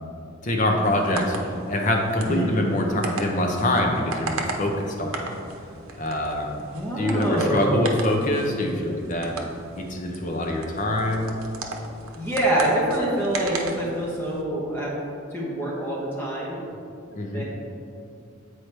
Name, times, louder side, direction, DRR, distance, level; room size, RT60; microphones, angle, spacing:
voice 1, 0.4-5.3 6.0-6.6 7.0-9.4 9.8-11.3 17.1-17.4, left 1 dB, 35° left, 1 dB, 0.7 m, -25 dB
sound 1, 0.8-14.4, right 3 dB, 90° right, 0.7 m, -37 dB
voice 2, 6.6-7.9 12.1-14.9 15.3-16.6 17.1-17.4, right 1 dB, 10° left, -6 dB, 1.0 m, -25 dB
8.0 x 4.6 x 3.3 m, 2.5 s
head